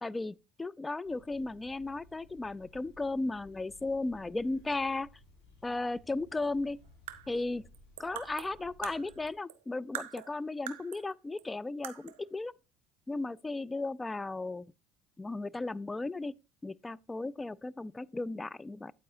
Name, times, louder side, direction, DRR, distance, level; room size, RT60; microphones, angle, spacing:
voice 1, 0.0-5.1 5.6-6.8 7.3-7.6 8.0-12.5 13.1-14.7 15.2-16.3 16.6-18.9, left 2 dB, 15° left, 0.3 m, -35 dB
sound 1, 1.0-9.3, left 2 dB, 80° left, 3.2 m, -59 dB
sound 2, 6.8-9.6 9.9-11.1 11.4-11.5 11.8-12.3, right 11 dB, 75° right, 0.6 m, -44 dB
8.6 x 8.4 x 2.7 m
hypercardioid pair, 70°, 0 cm